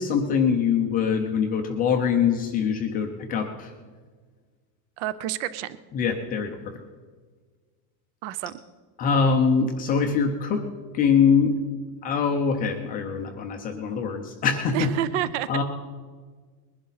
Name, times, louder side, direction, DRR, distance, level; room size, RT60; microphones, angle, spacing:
voice 1, 0.0-3.7 5.9-6.6 9.0-10.6 10.9-11.5 12.0-14.9 15.5-15.6, left 6 dB, 20° left, 3 dB, 0.5 m, -23 dB
voice 2, 5.0-5.8 8.2-8.5 14.7-15.5, right 12 dB, 45° right, 16 dB, 0.6 m, -29 dB
21.0 x 11.5 x 4.0 m, 1.5 s
supercardioid pair, 170°, 49 cm